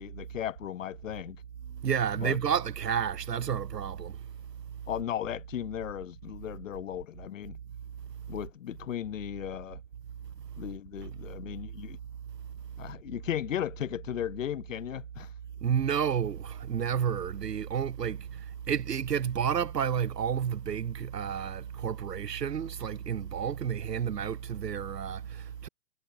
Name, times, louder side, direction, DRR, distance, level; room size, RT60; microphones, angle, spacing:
voice 1, 0.0-1.4 2.2-2.4 4.9-7.6 8.3-9.8 10.6-12.0 12.8-15.3, left 11 dB, 50° left, 1.1 m, -36 dB
voice 2, 1.8-4.2 15.6-25.7, right 8 dB, 80° right, 1.0 m, -31 dB
hypercardioid pair, 140°, 48 cm